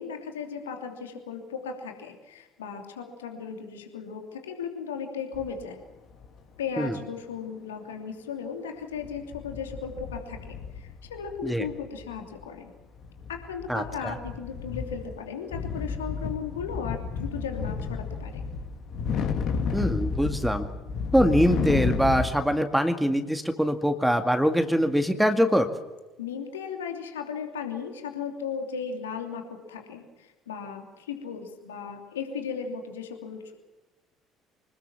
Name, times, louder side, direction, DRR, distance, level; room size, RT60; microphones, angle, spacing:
voice 1, 0.0-5.8 6.6-12.7 13.3-18.4 26.2-33.5, left 6 dB, 75° left, 4 dB, 2.9 m, -36 dB
sound 1, 5.3-5.5 6.1-6.3 9.0-12.4 13.0-15.2 15.5-22.3, left 5 dB, 55° left, 3.1 m, -32 dB
voice 2, 13.7-14.1 19.7-20.7 21.1-25.7, equal, 5° right, 7 dB, 2.1 m, -23 dB
26.0 x 20.5 x 7.4 m, 1.1 s
figure-of-eight pair, 55°, 0 cm